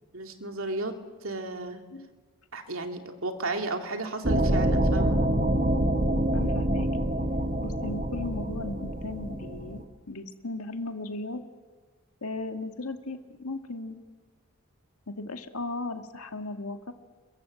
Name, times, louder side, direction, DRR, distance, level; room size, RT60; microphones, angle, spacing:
voice 1, 0.1-0.9 1.2-1.8 2.5-5.2, right 2 dB, 70° right, 4 dB, 2.6 m, -33 dB
sound 1, 4.2-9.8, right 1 dB, 40° right, 1.4 m, -26 dB
voice 2, 6.3-7.1 7.6-11.4 12.2-14.0 15.1-16.9, left 2 dB, 90° left, 6 dB, 2.0 m, -36 dB
29.0 x 22.5 x 7.8 m, 1.4 s
head